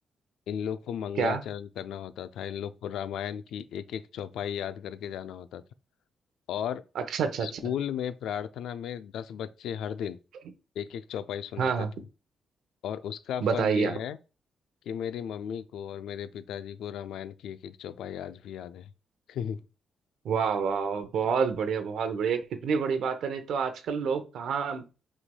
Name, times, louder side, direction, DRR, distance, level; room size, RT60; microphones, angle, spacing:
voice 1, 0.5-5.6 6.5-6.8 7.4-10.2 10.8-11.9 12.8-14.2 14.9-18.9 19.3-19.6, left 9 dB, 90° left, 0.3 m, -35 dB
voice 2, 7.1-7.5 11.6-11.9 13.4-14.0 20.2-24.8, right 6 dB, 80° right, 0.7 m, -28 dB
6.1 x 3.2 x 2.2 m
cardioid pair, 105°, 0 cm